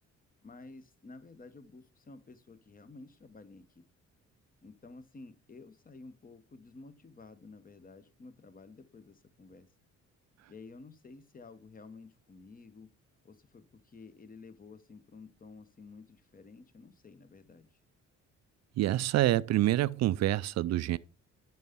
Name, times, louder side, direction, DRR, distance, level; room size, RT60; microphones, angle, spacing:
voice 1, 0.4-3.8 4.6-9.7 10.5-12.9 13.2-17.7, left 3 dB, 30° left, 0.9 m, -52 dB
voice 2, 18.8-21.0, right 14 dB, 60° right, 0.4 m, -27 dB
9.1 x 5.6 x 3.6 m
cardioid pair, 90°, 30 cm